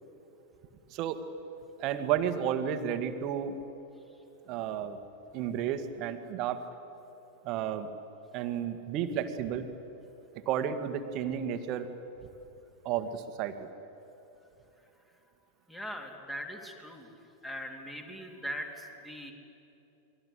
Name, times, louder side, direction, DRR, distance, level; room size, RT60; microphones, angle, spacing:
voice 1, 0.9-1.2 1.8-3.5 4.5-5.0 5.3-6.6 7.4-7.9 8.3-9.7 10.5-11.9 12.9-13.7, right 9 dB, 40° right, 9 dB, 1.9 m, -32 dB
voice 2, 15.7-17.1 17.4-19.3, equal, 5° left, 2 dB, 3.6 m, -40 dB
29.0 x 22.5 x 8.3 m, 3.0 s
figure-of-eight pair, 90°, 0 cm